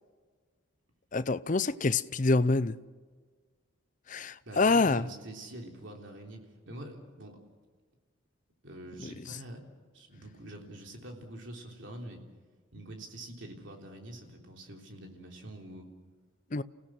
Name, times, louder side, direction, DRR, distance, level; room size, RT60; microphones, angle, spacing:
voice 1, 1.1-2.8 4.1-5.1 16.5-16.6, left 3 dB, 40° left, 0.6 m, -26 dB
voice 2, 4.4-7.4 8.6-9.6 9.9-12.2 12.7-15.9, right 1 dB, 60° right, 3.5 m, -45 dB
30.0 x 16.5 x 6.3 m
head